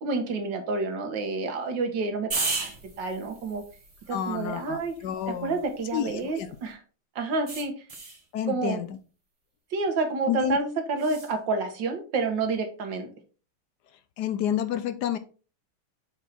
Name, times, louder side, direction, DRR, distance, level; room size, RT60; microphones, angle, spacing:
voice 1, 0.0-2.7 3.0-3.6 4.1-4.9 5.4-6.8 7.2-7.7 8.5-8.8 9.7-13.1, right 3 dB, 60° right, 1.8 m, -29 dB
sound 1, 2.3-6.7 7.5-8.2 11.0-11.3, right 3 dB, 25° right, 0.7 m, -36 dB
voice 2, 4.1-5.6 5.9-6.6 8.3-9.0 10.3-10.6 14.2-15.2, left 10 dB, 75° left, 0.9 m, -29 dB
6.7 x 4.6 x 4.2 m
omnidirectional pair, 2.4 m